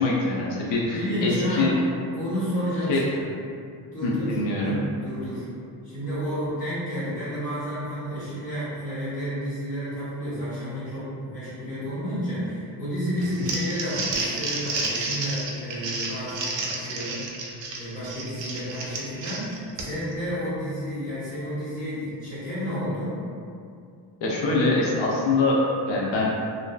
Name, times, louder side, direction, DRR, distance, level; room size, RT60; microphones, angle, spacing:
voice 1, 0.0-1.7 2.9-3.0 4.0-4.8 13.4-13.5 24.2-26.3, left 2 dB, 85° left, -3 dB, 0.6 m, -24 dB
voice 2, 0.9-1.8 2.1-3.3 3.9-5.5 5.8-17.4 17.7-23.2, equal, 20° left, -12 dB, 0.9 m, -31 dB
Crumpling crinkling, 13.2-20.1, right 3 dB, 90° right, 0.5 m, -31 dB
2.6 x 2.3 x 2.2 m, 2.4 s
wide cardioid pair, 170°, 44 cm